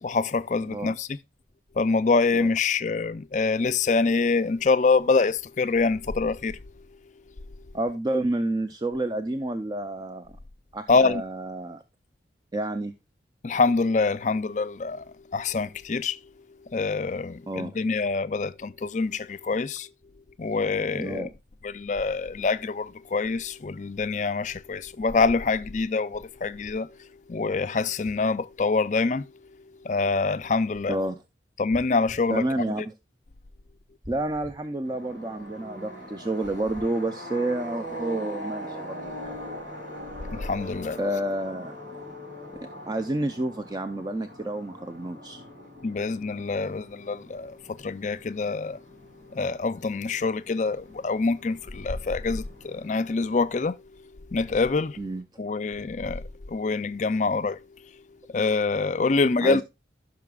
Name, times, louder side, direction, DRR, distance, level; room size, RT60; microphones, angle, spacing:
voice 1, 0.0-1.1 1.8-6.6 10.9-11.2 13.4-15.0 15.3-16.2 16.7-19.9 20.4-21.3 21.6-26.9 27.3-29.3 29.8-31.0 31.6-32.7 40.3-41.0 45.8-48.8 49.3-53.8 54.3-55.0 55.4-57.6 58.3-59.6, left 4 dB, 40° left, 0.4 m, -25 dB
voice 2, 0.6-1.0 2.3-2.5 7.7-10.4 10.7-11.8 12.5-12.9 17.5-17.7 20.9-21.3 30.9-31.2 32.3-32.9 34.1-39.4 41.0-41.8 42.6-45.4 55.0-55.2 59.4-59.6, right 1 dB, 20° right, 0.5 m, -30 dB
sound 1, 31.7-32.3 34.0-34.6 36.4-36.9, left 1 dB, 50° right, 4.9 m, -45 dB
sound 2, 34.8-53.6, equal, 80° right, 5.7 m, -42 dB
15.5 x 6.0 x 2.3 m
head